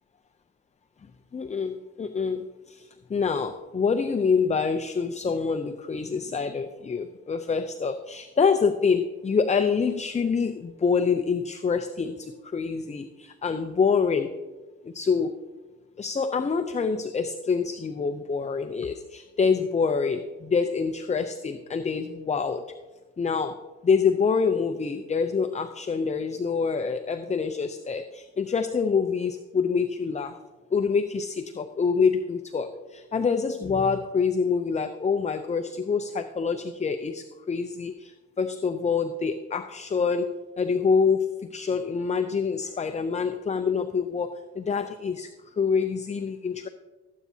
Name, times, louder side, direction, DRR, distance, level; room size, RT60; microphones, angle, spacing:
voice 1, 1.3-14.4 14.8-15.3 16.0-22.7 23.2-30.4 30.7-40.3 40.6-46.7, left 5 dB, 25° left, 8 dB, 0.5 m, -26 dB
18.0 x 8.3 x 2.8 m, 1.3 s
cardioid pair, 90°, 30 cm